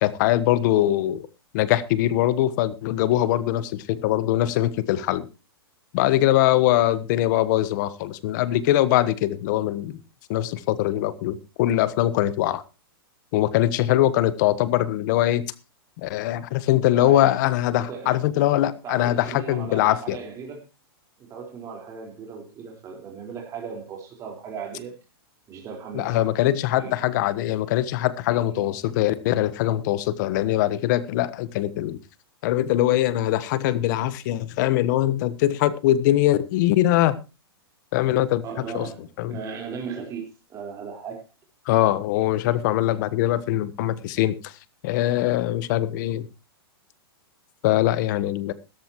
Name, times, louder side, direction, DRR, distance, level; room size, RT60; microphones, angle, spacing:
voice 1, 0.0-1.2 1.5-5.3 5.9-10.0 10.3-12.6 13.3-15.5 16.0-20.2 25.9-32.0 32.4-37.1 37.9-38.4 38.7-38.9 39.2-39.4 41.7-44.5 44.8-46.3 47.6-48.5, left 14 dB, 50° left, 1.2 m, -22 dB
voice 2, 16.9-17.4 17.7-18.2 18.5-18.6 18.8-20.6 21.2-24.9 25.5-26.3 26.7-27.0 28.5-28.7 38.4-39.0 39.3-41.3, right 6 dB, 25° right, 4.5 m, -37 dB
15.5 x 13.5 x 3.1 m
hypercardioid pair, 140°, 13 cm